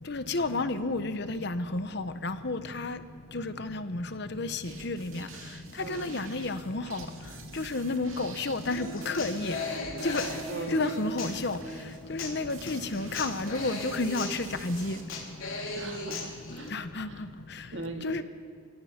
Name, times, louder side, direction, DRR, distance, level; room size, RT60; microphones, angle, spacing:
voice 1, 0.1-3.0 3.3-5.3 5.9-7.0 7.5-9.6 10.0-10.2 10.7-11.6 12.1-15.0 16.7-17.1 18.0-18.2, left 2 dB, 55° left, 11 dB, 1.0 m, -31 dB
sound 1, 4.6-15.0, right 4 dB, 90° right, 2.7 m, -48 dB
voice 2, 5.8-6.3 10.5-11.0 15.8-16.8 17.1-17.2 17.7-18.2, right 2 dB, 60° right, 4 dB, 2.1 m, -39 dB
Human voice / Acoustic guitar, 8.7-16.7, left 2 dB, 80° left, 3.6 m, -38 dB
27.5 x 18.0 x 5.9 m, 2.2 s
head